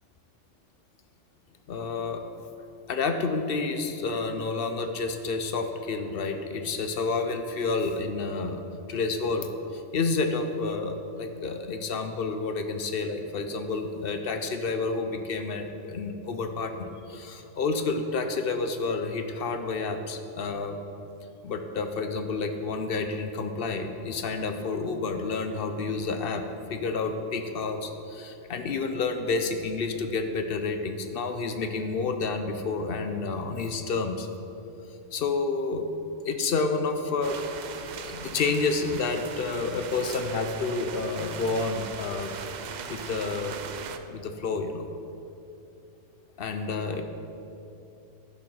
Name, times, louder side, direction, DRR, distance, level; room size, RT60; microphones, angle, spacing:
voice 1, 1.7-2.2 2.9-8.6 8.9-20.8 21.4-26.4 26.7-34.3 35.1-35.9 36.2-37.4 38.0-42.4 42.9-43.6 44.1-44.9 46.4-47.0, left 4 dB, 55° left, 7 dB, 0.7 m, -29 dB
sound 1, 37.2-44.0, right 6 dB, 80° right, 0.4 m, -39 dB
11.0 x 5.3 x 5.5 m, 2.8 s
omnidirectional pair, 1.3 m